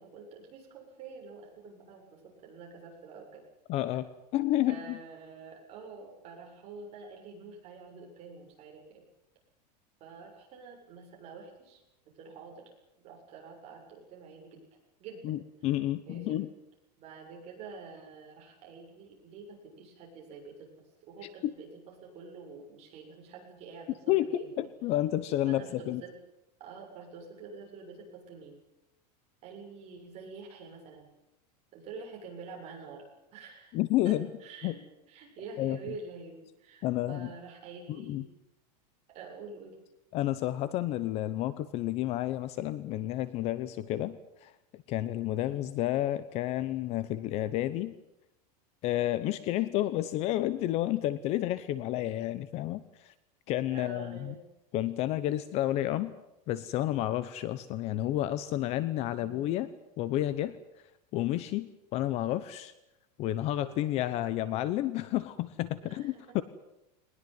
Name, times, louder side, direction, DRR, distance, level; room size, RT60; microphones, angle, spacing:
voice 1, 0.0-3.4 4.7-9.0 10.0-12.6 13.0-14.6 15.0-15.2 16.1-16.4 17.0-21.7 22.0-24.7 25.4-26.1 26.6-28.6 29.4-31.1 31.7-33.0 33.3-33.8 34.0-34.8 35.1-38.2 39.1-39.8 45.5-45.6 53.7-54.4 59.2-59.7 63.7-64.3 65.8-66.4, right 4 dB, 30° right, 0 dB, 7.4 m, -47 dB
voice 2, 3.7-4.1 4.3-5.0 15.2-16.5 21.4-21.5 24.1-26.0 33.7-34.3 34.6-34.8 35.6-35.8 36.8-37.3 38.0-38.2 40.1-48.0 48.8-53.1 53.5-54.3 54.7-56.1 56.5-59.7 60.0-60.6 61.1-62.7 63.2-66.4, left 14 dB, 30° left, 15 dB, 0.8 m, -30 dB
21.0 x 20.5 x 9.5 m, 0.89 s
supercardioid pair, 170°, 21 cm